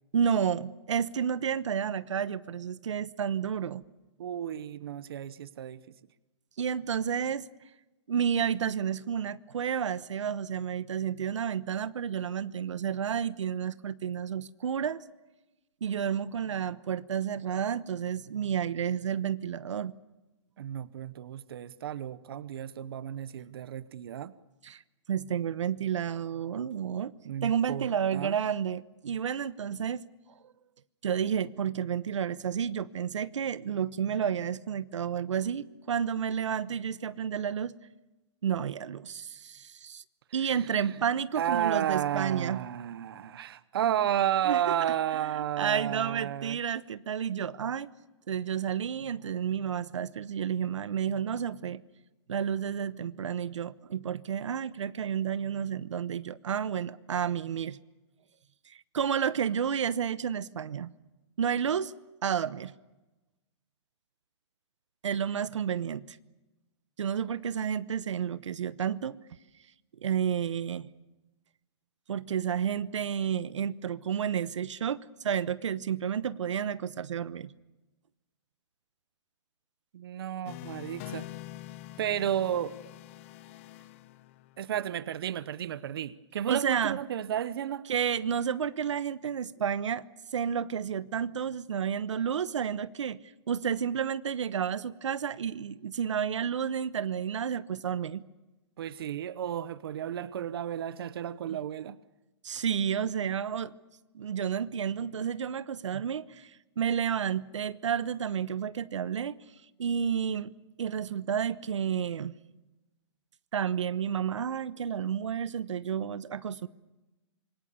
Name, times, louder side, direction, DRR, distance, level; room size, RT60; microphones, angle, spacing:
voice 1, 0.1-3.8 6.6-7.4 8.1-15.0 15.8-19.9 24.6-24.8 25.1-27.1 27.4-30.0 31.0-37.7 38.4-40.0 40.3-42.6 44.4-44.6 45.6-47.9 48.3-51.8 52.3-57.8 58.7-60.9 61.4-61.9 62.2-62.7 65.0-66.2 67.0-69.1 70.0-70.9 72.1-77.5 86.5-87.0 87.9-90.0 90.3-93.2 93.5-98.2 101.5-101.6 102.4-103.7 104.1-109.4 109.8-110.5 110.8-112.3 113.5-116.7, right 8 dB, 75° right, 1.0 m, -31 dB
voice 2, 4.2-5.8 20.6-24.3 27.2-28.4 40.4-40.6 41.4-46.6 79.9-81.2 82.0-82.7 84.6-87.9 98.8-102.0 105.9-106.0, right 10 dB, 50° right, 0.9 m, -32 dB
sound 1, 80.5-84.7, left 14 dB, 25° left, 0.7 m, -45 dB
26.5 x 24.0 x 7.0 m
hypercardioid pair, 165°, 16 cm